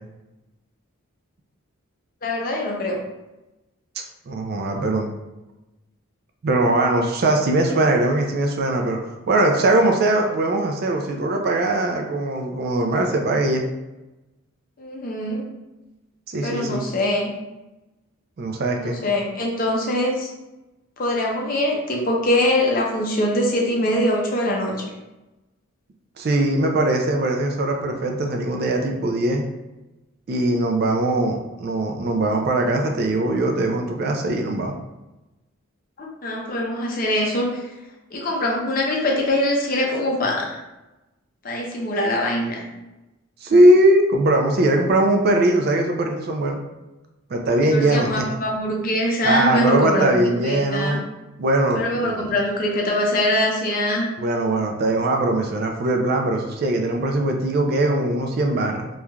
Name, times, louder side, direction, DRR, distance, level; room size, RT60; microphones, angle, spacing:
voice 1, 2.2-3.0 14.8-15.4 16.4-17.3 18.8-20.3 21.0-24.9 36.0-37.6 38.1-40.6 41.4-42.6 47.6-51.0 51.8-54.1, left 1 dB, 45° left, -1 dB, 0.5 m, -23 dB
voice 2, 4.3-5.1 6.4-13.6 16.3-16.9 18.4-19.0 26.2-29.4 30.3-34.7 43.4-46.6 47.3-48.2 49.2-51.0 51.4-52.3 54.2-58.9, right 1 dB, 50° right, 3 dB, 0.3 m, -20 dB
3.1 x 2.4 x 2.2 m, 1.0 s
head